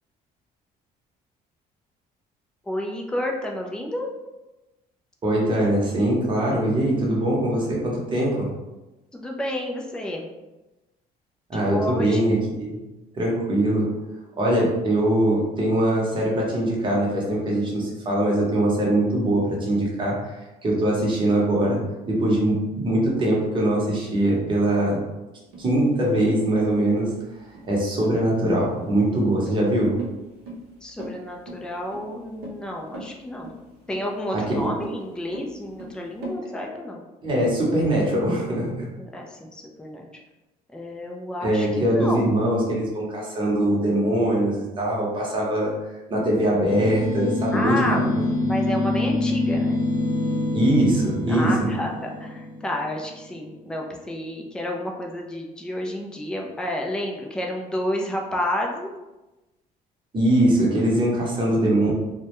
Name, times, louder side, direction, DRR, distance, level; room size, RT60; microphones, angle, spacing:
voice 1, 2.6-4.1 9.1-10.3 11.5-12.2 30.8-33.5 33.9-37.0 39.0-40.1 40.7-42.5 47.5-48.1 48.4-49.8 51.3-58.9 61.8-61.9, left 1 dB, 5° left, 0 dB, 0.3 m, -30 dB
voice 2, 5.2-8.5 11.5-12.8 13.1-14.0 14.4-25.0 25.6-27.1 27.6-30.0 34.5-34.7 37.2-38.8 41.4-45.7 46.1-48.1 50.5-51.7 60.1-61.9, right 1 dB, 30° right, -4 dB, 0.8 m, -22 dB
sound 1, 25.5-36.4, right 1 dB, 80° right, 0.6 m, -40 dB
sound 2, 46.7-53.3, left 2 dB, 45° left, 0.9 m, -26 dB
2.2 x 2.1 x 2.9 m, 1.1 s
cardioid pair, 110°, 17 cm